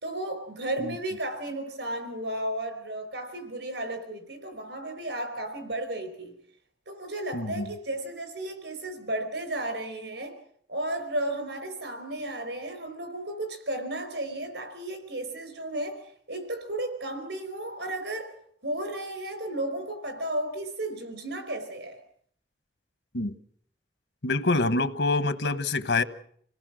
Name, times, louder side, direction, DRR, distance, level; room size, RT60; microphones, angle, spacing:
voice 1, 0.0-6.3 6.9-10.3 10.7-16.0 16.3-18.3 18.6-22.0, right 1 dB, 80° right, 9 dB, 4.9 m, -33 dB
voice 2, 7.3-7.7 23.1-23.3 24.2-26.0, left 3 dB, 80° left, 12 dB, 1.2 m, -26 dB
27.0 x 18.0 x 6.3 m, 0.63 s
head